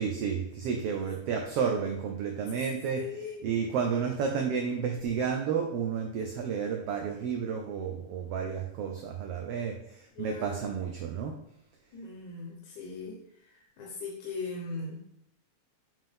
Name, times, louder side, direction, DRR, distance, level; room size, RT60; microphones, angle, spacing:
voice 1, 0.0-11.4, right 6 dB, 75° right, 2 dB, 1.4 m, -31 dB
voice 2, 2.9-3.4 10.2-10.5 11.9-13.2 13.8-15.0, left 4 dB, 90° left, -2 dB, 2.6 m, -39 dB
7.7 x 5.6 x 3.6 m, 0.76 s
omnidirectional pair, 3.4 m